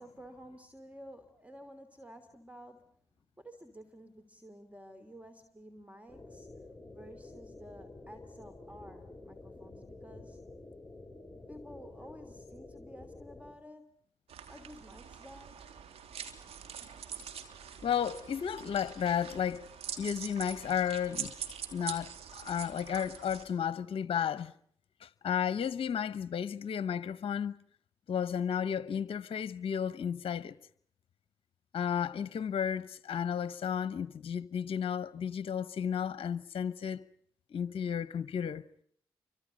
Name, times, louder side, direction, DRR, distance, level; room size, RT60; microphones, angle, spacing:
voice 1, 0.0-2.9 3.4-6.5 6.9-10.4 11.5-14.0 14.5-15.6, equal, 15° right, 3.2 m, -52 dB
sound 1, 6.1-13.5, left 2 dB, 5° left, 6.2 m, -50 dB
sound 2, 14.3-23.4, right 8 dB, 70° right, 3.1 m, -44 dB
voice 2, 17.8-19.7 20.0-21.3 21.7-24.5 25.0-27.6 28.1-30.6 31.7-37.0 37.5-38.6, left 8 dB, 60° left, 0.9 m, -33 dB
29.5 x 25.0 x 5.3 m
hypercardioid pair, 45°, 11 cm